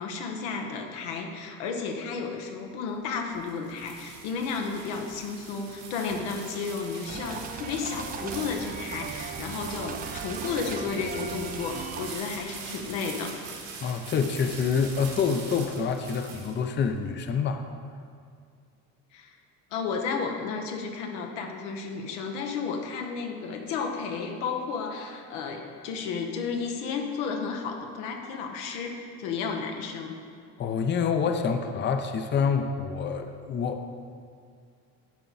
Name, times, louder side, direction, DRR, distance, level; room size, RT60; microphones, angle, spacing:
voice 1, 0.0-13.4 19.1-19.3 19.7-30.2, left 5 dB, 90° left, 3 dB, 1.0 m, -33 dB
sound 1, 3.1-16.9, right 5 dB, 70° right, 1.7 m, -42 dB
sound 2, 7.1-12.1, right 7 dB, 25° right, 0.3 m, -38 dB
voice 2, 13.8-17.6 30.6-33.9, left 6 dB, 30° left, 6 dB, 0.5 m, -27 dB
11.5 x 4.6 x 4.0 m, 2.3 s
supercardioid pair, 90°, 36 cm